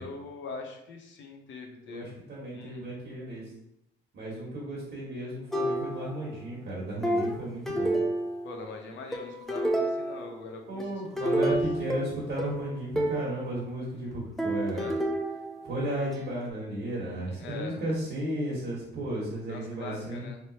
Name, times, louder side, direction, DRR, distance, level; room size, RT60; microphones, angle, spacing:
voice 1, 0.0-2.2 2.5-2.8 8.4-11.6 14.7-15.0 17.3-17.9 19.5-20.4, left 4 dB, 70° left, 3 dB, 0.7 m, -42 dB
voice 2, 1.9-3.5 4.1-8.0 10.7-14.9 15.6-20.3, right 1 dB, 60° right, -6 dB, 1.3 m, -34 dB
sound 1, 5.5-6.3 7.0-8.7 9.1-10.3 10.8-13.3 14.4-16.2, right 1 dB, ahead, 0.5 m, -29 dB
3.2 x 2.9 x 2.8 m, 0.79 s
cardioid pair, 90°, 20 cm